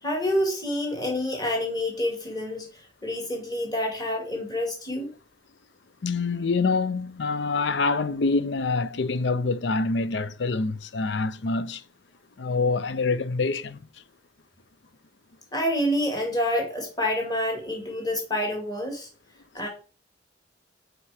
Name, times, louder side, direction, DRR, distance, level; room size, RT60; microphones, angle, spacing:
voice 1, 0.0-5.1 15.5-19.1 19.5-19.7, left 1 dB, 20° left, 2.1 m, -28 dB
voice 2, 6.0-11.8 12.4-13.8, left 3 dB, 70° left, 0.5 m, -26 dB
6.0 x 4.6 x 4.9 m
head